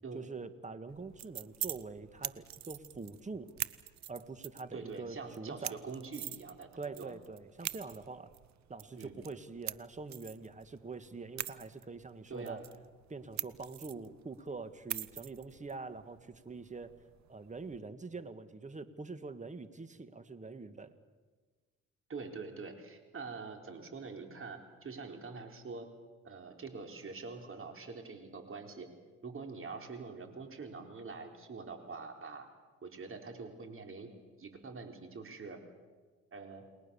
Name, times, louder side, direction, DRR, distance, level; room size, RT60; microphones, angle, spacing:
voice 1, 0.1-3.5 4.1-5.8 6.8-8.3 8.7-12.7 13.1-17.0 17.3-21.0, right 4 dB, 25° right, 11 dB, 1.8 m, -45 dB
sound 1, 0.9-17.8, right 12 dB, 65° right, 0.9 m, -45 dB
voice 2, 4.7-6.7 6.9-7.1 9.0-9.2 12.3-12.6 22.1-25.9 26.2-28.9 29.2-32.5 32.8-34.1 34.4-35.6 36.3-36.6, right 4 dB, 45° right, 5 dB, 4.0 m, -45 dB
30.0 x 20.0 x 7.1 m, 1.4 s
cardioid pair, 90°, 30 cm